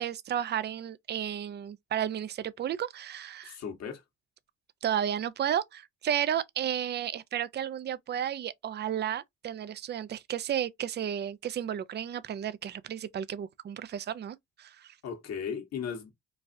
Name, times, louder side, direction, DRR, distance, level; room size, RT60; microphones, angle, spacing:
voice 1, 0.0-3.6 4.8-14.9, right 10 dB, 35° right, 0.4 m, -33 dB
voice 2, 3.4-4.0 15.0-16.1, left 7 dB, 60° left, 1.2 m, -36 dB
3.9 x 2.4 x 2.5 m
cardioid pair, 90°, 30 cm